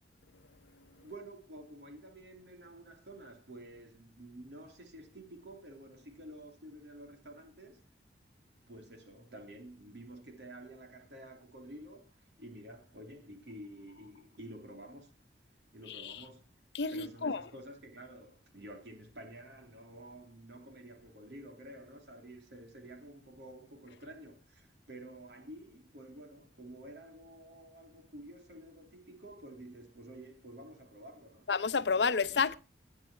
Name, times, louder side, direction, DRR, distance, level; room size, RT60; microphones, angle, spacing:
voice 1, 1.0-7.8 8.7-15.1 15.7-16.6 16.9-31.5, right 1 dB, 75° right, 3.1 m, -50 dB
voice 2, 16.7-17.4 31.5-32.6, left 5 dB, 70° left, 0.8 m, -30 dB
17.0 x 9.7 x 4.4 m
head